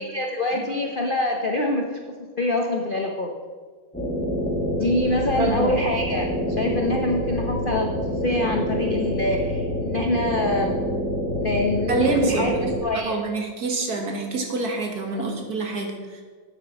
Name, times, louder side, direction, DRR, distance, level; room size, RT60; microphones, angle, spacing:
voice 1, 0.0-3.3 4.8-6.3 6.6-10.7 11.4-12.5 12.8-13.2, left 2 dB, 55° left, 2 dB, 0.5 m, -25 dB
sound 1, 3.9-12.8, equal, 5° left, 1.0 m, -27 dB
voice 2, 5.3-5.8 11.9-16.2, right 3 dB, 50° right, 2 dB, 1.9 m, -27 dB
9.1 x 8.2 x 6.0 m, 1.5 s
omnidirectional pair, 2.2 m